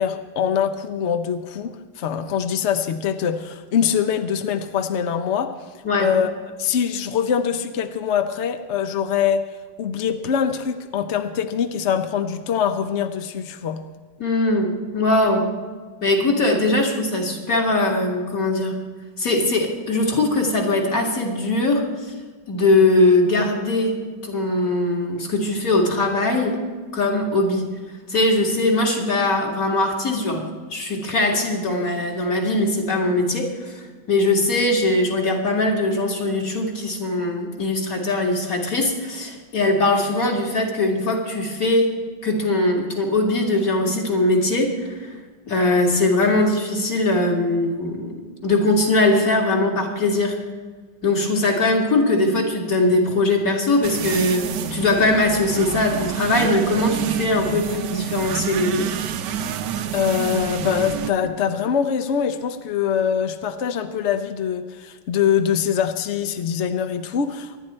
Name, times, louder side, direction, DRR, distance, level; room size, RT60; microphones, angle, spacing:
voice 1, 0.0-5.6 6.0-6.3 6.6-9.4 9.8-13.8 59.9-67.6, left 8 dB, 65° left, 8 dB, 0.7 m, -23 dB
voice 2, 5.8-6.1 14.2-15.5 16.0-18.8 19.2-21.9 22.5-26.6 26.9-27.7 28.1-45.1 45.5-48.2 48.4-50.4 51.0-58.9, left 2 dB, 45° left, 0 dB, 2.6 m, -21 dB
sound 1, 53.8-61.1, right 8 dB, 70° right, 1.3 m, -28 dB
25.0 x 10.0 x 4.3 m, 1.4 s
omnidirectional pair, 2.1 m